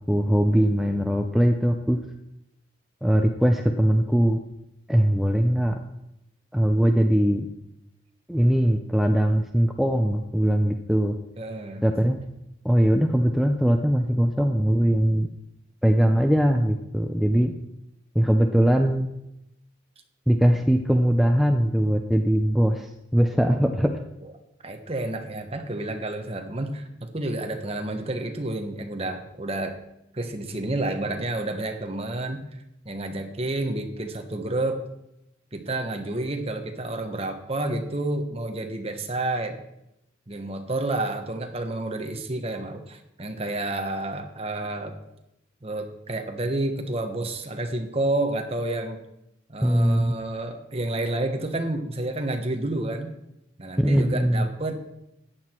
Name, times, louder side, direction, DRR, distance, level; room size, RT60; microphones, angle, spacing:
voice 1, 0.1-2.0 3.0-4.4 4.9-5.8 6.5-7.5 8.3-11.2 11.8-12.2 12.6-15.3 15.8-17.5 18.1-19.1 20.3-23.9 49.6-50.2 53.8-54.5, equal, ahead, 3 dB, 0.5 m, -21 dB
voice 2, 11.4-11.8 24.6-29.8 30.1-32.4 32.8-34.8 35.5-39.6 40.3-45.0 45.6-49.0 49.5-53.1 53.6-54.8, right 2 dB, 30° right, 5 dB, 1.2 m, -30 dB
14.5 x 9.5 x 4.5 m, 0.85 s
head